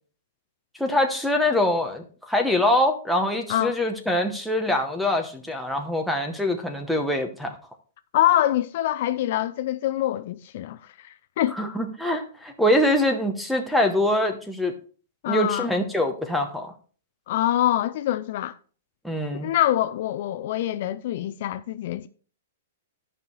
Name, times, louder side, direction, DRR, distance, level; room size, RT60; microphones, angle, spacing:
voice 1, 0.8-7.6 11.5-14.7 15.3-16.7 19.0-19.5, left 1 dB, ahead, 0.9 m, -24 dB
voice 2, 8.1-11.6 15.2-15.7 17.3-18.6 19.3-22.1, left 13 dB, 50° left, 0.4 m, -25 dB
13.0 x 5.4 x 3.2 m
hypercardioid pair, 165°, 0 cm